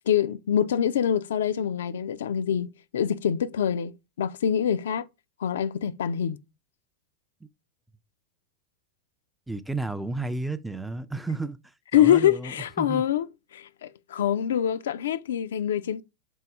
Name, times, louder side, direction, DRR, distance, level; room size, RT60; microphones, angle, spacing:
voice 1, 0.1-5.1 5.4-6.4 11.9-13.2 13.5-16.0, left 9 dB, 60° left, 0.4 m, -25 dB
voice 2, 9.5-13.0, right 3 dB, 5° right, 0.4 m, -32 dB
5.4 x 4.0 x 4.8 m
figure-of-eight pair, 90°, 0 cm